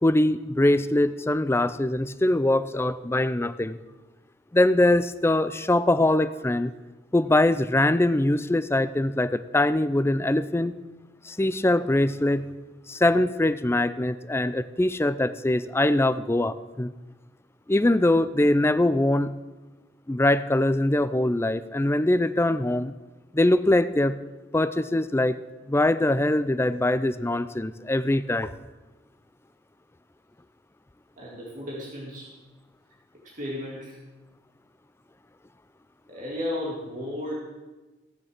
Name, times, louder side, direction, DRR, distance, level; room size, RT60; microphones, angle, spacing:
voice 1, 0.0-3.8 4.5-6.7 7.1-10.7 11.2-12.5 12.9-16.9 17.7-19.3 20.1-22.9 23.3-24.2 24.5-25.4 25.7-28.5, left 1 dB, 15° left, 13 dB, 0.5 m, -22 dB
voice 2, 31.2-32.3 33.2-34.0 36.1-37.3, left 1 dB, 45° right, -4 dB, 2.5 m, -34 dB
16.0 x 7.5 x 6.6 m, 1.2 s
head